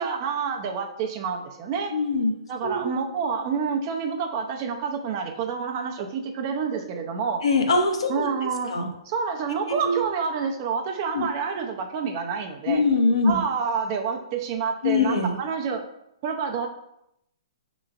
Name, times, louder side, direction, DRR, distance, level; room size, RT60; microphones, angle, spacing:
voice 1, 0.0-1.9 2.5-7.4 8.1-8.7 9.1-12.8 13.2-15.8 16.2-16.7, right 6 dB, 40° right, 3 dB, 0.6 m, -28 dB
voice 2, 1.9-2.3 2.6-2.9 7.4-8.3 8.7-8.9 9.8-10.0 11.1-11.3 12.7-13.4 14.8-15.4, left 3 dB, 75° left, 3 dB, 0.8 m, -22 dB
6.4 x 3.0 x 2.5 m, 0.81 s
hypercardioid pair, 135°, 3 cm